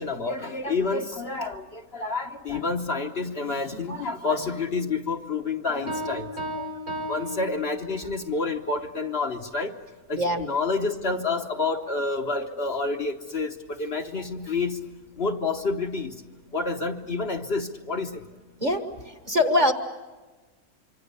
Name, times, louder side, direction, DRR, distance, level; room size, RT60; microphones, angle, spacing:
voice 1, 0.0-9.7 10.1-14.8 15.2-16.2 16.5-18.2, left 3 dB, 45° left, 4 dB, 1.2 m, -29 dB
Piano, 5.9-8.2, right 1 dB, 80° right, 5.2 m, -34 dB
voice 2, 10.2-10.5 18.6-18.8 19.3-19.7, left 1 dB, 30° right, 7 dB, 1.3 m, -22 dB
25.5 x 25.0 x 6.8 m, 1.3 s
omnidirectional pair, 1.6 m